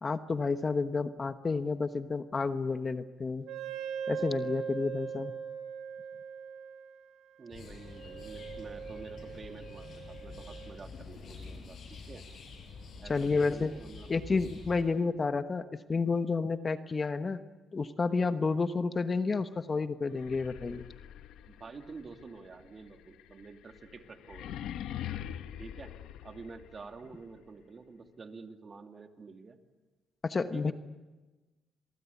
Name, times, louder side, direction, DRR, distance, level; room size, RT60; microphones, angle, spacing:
voice 1, 0.0-3.5 4.1-5.3 13.1-13.7 14.1-17.4 17.7-20.9 30.2-30.7, left 4 dB, 35° left, 10 dB, 1.1 m, -30 dB
Wind instrument woodwind instrument, 3.5-10.8, right 7 dB, 85° right, 2.4 m, -41 dB
voice 2, 7.4-12.2 13.0-14.1 15.0-15.1 21.4-24.6 25.6-25.9 26.2-29.6 30.5-30.7, right 4 dB, 40° right, 5 dB, 2.7 m, -49 dB
sound 1, 7.5-14.8, left 4 dB, 60° left, 6.1 m, -47 dB
sound 2, 20.1-27.0, left 11 dB, 85° left, 1.1 m, -43 dB
29.5 x 23.0 x 8.5 m, 1.2 s
cardioid pair, 90°, 0 cm